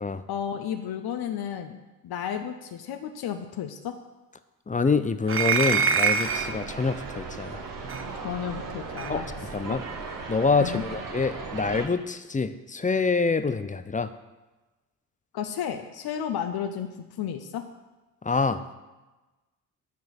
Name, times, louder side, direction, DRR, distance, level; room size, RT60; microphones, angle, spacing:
voice 1, 0.3-1.8 2.0-4.0 8.2-9.8 10.6-10.8 15.3-16.9 17.2-17.7, left 8 dB, 50° left, 6 dB, 1.1 m, -33 dB
voice 2, 4.7-7.6 9.1-9.2 9.5-9.8 10.3-14.1 18.2-18.7, left 4 dB, 15° left, 11 dB, 0.8 m, -26 dB
sound 1, 5.3-6.6 7.9-8.0 9.0-9.1, right 6 dB, 30° right, 0.9 m, -24 dB
sound 2, 6.2-11.9, right 4 dB, 45° right, 1.9 m, -37 dB
10.5 x 6.0 x 7.4 m, 1.1 s
figure-of-eight pair, 45°, 47 cm